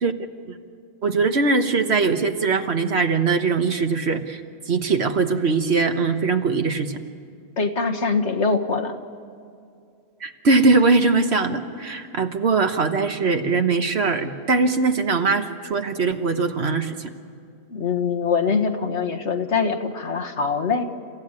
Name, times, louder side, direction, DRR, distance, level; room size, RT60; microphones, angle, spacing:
voice 1, 1.0-4.4 4.7-7.0 10.2-17.1, right 4 dB, 55° right, 7 dB, 1.4 m, -21 dB
voice 2, 7.6-8.9 17.7-20.9, left 5 dB, 60° left, 4 dB, 1.8 m, -23 dB
30.0 x 15.5 x 9.7 m, 2.4 s
omnidirectional pair, 1.3 m